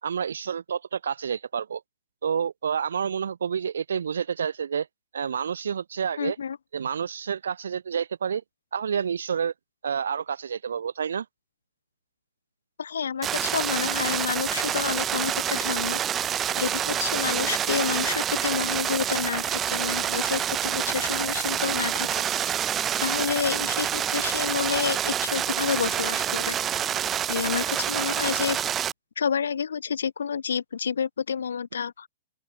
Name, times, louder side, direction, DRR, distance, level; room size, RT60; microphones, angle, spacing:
voice 1, 0.0-1.8 2.2-4.9 5.1-6.4 6.7-8.4 8.7-9.5 9.8-11.3, right 7 dB, 85° right, 3.8 m, -29 dB
voice 2, 6.2-6.6 12.8-16.0 16.6-22.1 23.0-26.5 27.3-28.6 29.2-32.1, left 7 dB, 90° left, 3.3 m, -29 dB
sound 1, 13.2-28.9, right 10 dB, 20° right, 1.4 m, -27 dB
open air
hypercardioid pair, 140°, 0 cm